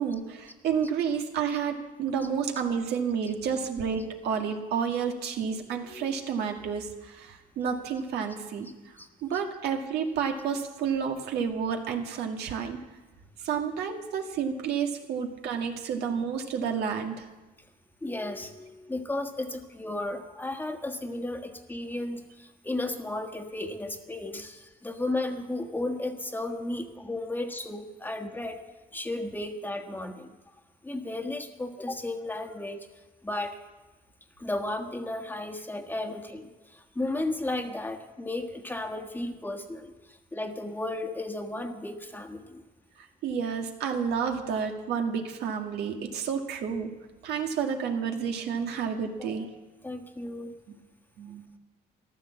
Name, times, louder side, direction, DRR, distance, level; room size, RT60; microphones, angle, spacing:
voice 1, 0.0-8.9 9.2-12.8 13.4-17.3 43.0-46.9 47.2-49.5 51.2-51.4, right 6 dB, 75° right, 3 dB, 2.0 m, -30 dB
voice 2, 18.0-28.6 28.9-30.3 30.8-32.9 33.2-33.6 34.4-42.6 49.2-49.4 49.8-50.5, left 2 dB, 10° left, 5 dB, 1.4 m, -34 dB
14.5 x 12.0 x 7.3 m, 1.2 s
cardioid pair, 110°, 17 cm